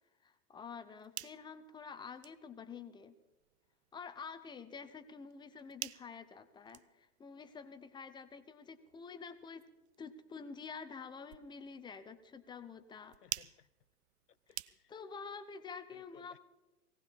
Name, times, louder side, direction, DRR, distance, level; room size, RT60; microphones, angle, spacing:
voice 1, 0.2-3.1 3.9-9.7 10.0-13.2 14.9-16.4, left 5 dB, 10° left, 12 dB, 0.7 m, -48 dB
sound 1, 0.8-15.2, right 15 dB, 50° right, 0.5 m, -51 dB
voice 2, 13.2-13.7 14.3-14.9 15.9-16.4, left 9 dB, 85° left, 18 dB, 0.7 m, -62 dB
18.5 x 17.5 x 4.2 m, 1.1 s
figure-of-eight pair, 100°, 46 cm